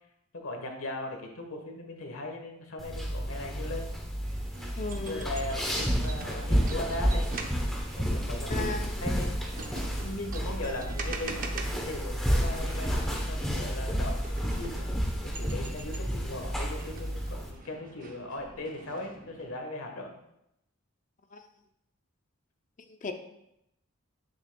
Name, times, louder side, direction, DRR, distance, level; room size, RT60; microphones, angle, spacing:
voice 1, 0.3-3.9 5.1-7.3 8.0-8.7 9.0-9.3 9.9-14.8 15.2-20.2, left 2 dB, 65° left, 3 dB, 1.3 m, -38 dB
sound 1, 2.8-17.5, equal, ahead, 0.8 m, -31 dB
sound 2, 4.2-19.5, right 3 dB, 40° right, 0.7 m, -44 dB
voice 2, 4.8-5.3 8.5-8.9 10.4-10.5 21.3-21.4 22.9-23.1, left 3 dB, 35° left, 6 dB, 0.5 m, -36 dB
8.9 x 6.2 x 2.3 m, 0.82 s
head